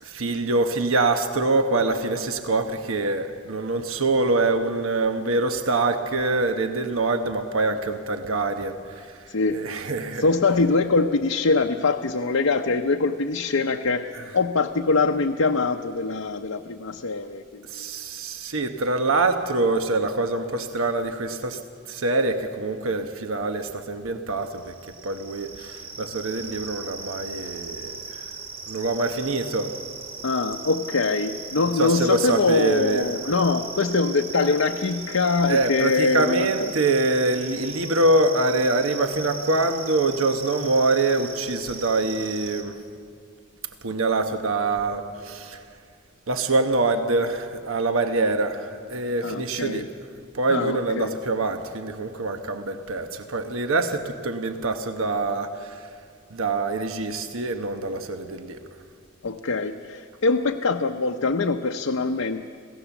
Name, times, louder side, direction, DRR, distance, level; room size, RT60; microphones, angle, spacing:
voice 1, 0.0-10.3 17.6-21.6 21.9-24.7 25.0-28.3 28.7-29.7 31.7-33.1 35.5-42.8 43.8-45.6 46.3-49.9 50.3-55.9 56.3-58.6, right 2 dB, 85° right, 7 dB, 1.1 m, -25 dB
voice 2, 9.3-9.6 10.2-17.9 30.2-36.5 49.2-49.8 50.5-51.1 59.2-62.4, left 3 dB, 90° left, 3 dB, 0.8 m, -23 dB
sound 1, 24.5-42.6, right 4 dB, 50° right, 2.1 m, -38 dB
27.0 x 17.0 x 7.1 m, 2.3 s
head